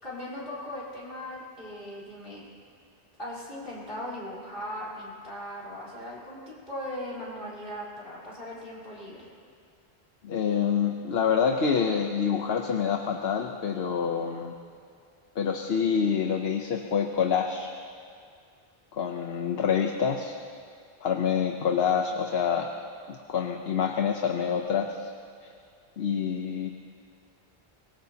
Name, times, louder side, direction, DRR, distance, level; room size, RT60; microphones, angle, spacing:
voice 1, 0.0-2.5 3.2-9.3, left 1 dB, 60° left, -6 dB, 4.3 m, -38 dB
voice 2, 10.2-14.5 15.4-17.7 18.9-20.4 21.0-22.7 23.1-25.1 25.4-25.5 26.0-26.7, left 7 dB, 80° left, 4 dB, 1.0 m, -27 dB
24.5 x 20.5 x 2.9 m, 2.3 s
omnidirectional pair, 1.0 m